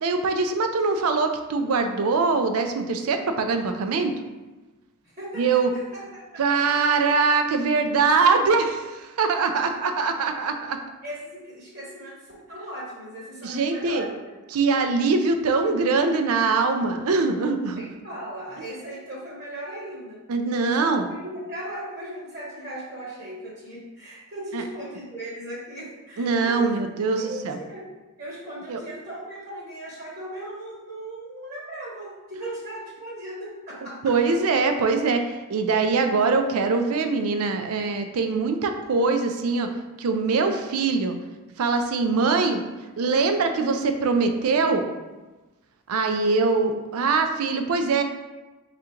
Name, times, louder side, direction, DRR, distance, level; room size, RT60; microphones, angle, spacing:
voice 1, 0.0-4.1 5.4-5.7 6.4-10.8 13.4-14.0 14.5-17.8 20.3-21.1 24.5-24.6 26.2-27.6 28.7-28.8 34.0-39.7 40.0-41.2 41.6-42.6 43.0-44.9 45.9-48.0, right 4 dB, 70° right, 6 dB, 0.4 m, -23 dB
voice 2, 5.0-7.0 9.4-10.3 11.0-14.3 17.8-20.2 20.6-26.7 27.1-27.9 28.2-34.3, right 1 dB, 45° right, -5 dB, 1.0 m, -38 dB
3.6 x 2.5 x 4.3 m, 1.1 s
head